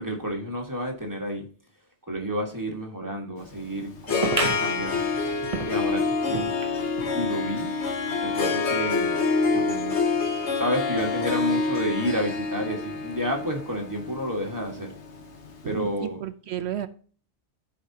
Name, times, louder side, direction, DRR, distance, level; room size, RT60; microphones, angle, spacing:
voice 1, 0.0-1.5 2.1-5.0 5.7-6.5 7.1-7.7 8.2-9.2 9.5-10.0 10.5-14.9 15.6-16.2, equal, 15° right, 1.6 m, -30 dB
Harp, 3.4-15.6, left 4 dB, 75° left, 1.4 m, -27 dB
sound 1, 4.2-7.2 7.6-7.7 7.9-8.0 8.8-8.9, right 4 dB, 35° right, 0.8 m, -32 dB
voice 2, 15.6-16.9, right 12 dB, 70° right, 0.8 m, -32 dB
14.0 x 5.0 x 2.8 m
omnidirectional pair, 1.2 m